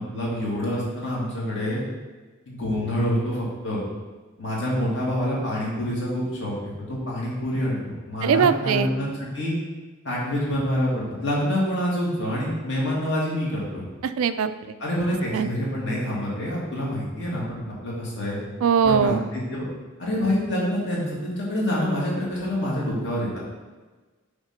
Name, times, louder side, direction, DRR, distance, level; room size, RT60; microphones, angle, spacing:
voice 1, 0.0-1.8 2.5-3.8 4.4-9.5 10.0-13.8 14.8-18.4 18.8-19.7 20.0-23.4, equal, 55° left, -5 dB, 2.1 m, -27 dB
voice 2, 8.2-8.9 14.0-14.7 15.3-15.5 18.6-19.2, right 7 dB, 85° right, 12 dB, 0.3 m, -21 dB
5.8 x 3.6 x 5.6 m, 1.3 s
head